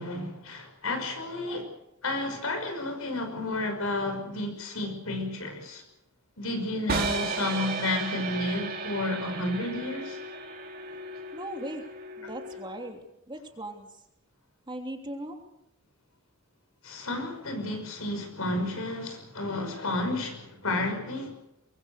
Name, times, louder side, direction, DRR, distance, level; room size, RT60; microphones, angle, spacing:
voice 1, 0.0-1.7 2.0-5.8 6.4-10.2 16.8-21.4, left 2 dB, 80° left, 5.9 m, -31 dB
sound 1, 6.9-12.9, right 3 dB, 45° right, 3.5 m, -35 dB
voice 2, 11.3-11.8 12.2-13.0 13.3-13.9 14.7-15.4, right 1 dB, 20° right, 3.1 m, -38 dB
23.5 x 22.5 x 6.6 m
head